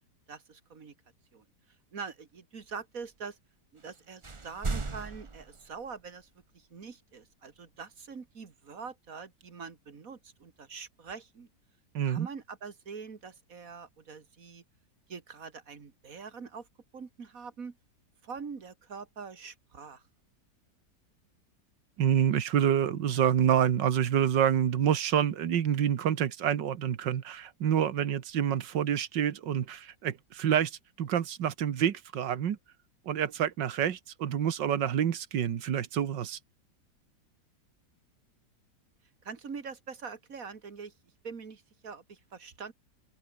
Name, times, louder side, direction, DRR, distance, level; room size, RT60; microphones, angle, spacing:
voice 1, 0.3-0.9 1.3-1.4 1.9-3.4 3.7-6.3 6.5-11.5 12.0-14.6 15.1-16.7 16.9-17.7 18.2-20.0 39.2-40.9 41.2-42.7, right 5 dB, 50° right, 2.4 m, -44 dB
sound 1, 3.8-3.9 4.2-6.3, right 3 dB, 20° right, 0.9 m, -37 dB
voice 2, 11.9-12.3 22.0-32.6 33.1-36.4, right 9 dB, 85° right, 2.0 m, -27 dB
open air
omnidirectional pair, 1.9 m